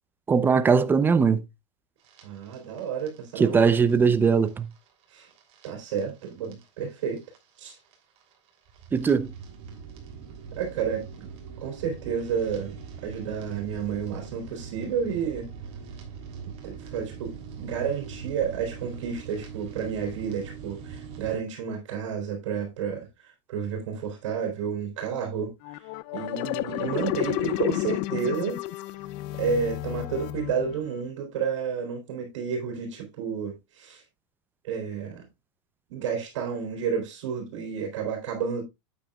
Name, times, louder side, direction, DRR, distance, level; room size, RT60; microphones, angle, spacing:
voice 1, 0.3-1.4 3.4-4.7 8.9-9.3, right 5 dB, 15° right, 0.6 m, -20 dB
sound 1, 2.0-21.4, right 6 dB, 40° right, 3.2 m, -42 dB
voice 2, 2.2-3.6 5.1-5.3 5.6-7.2 7.6-7.8 10.5-11.3 11.6-12.8 13.0-15.5 16.6-25.9 26.1-28.6 29.4-34.0 34.6-35.2 35.9-38.6, right 6 dB, 75° right, 3.4 m, -31 dB
sound 2, 25.6-31.0, left 17 dB, 45° left, 0.4 m, -31 dB
9.0 x 8.6 x 2.3 m
supercardioid pair, 145°, 15 cm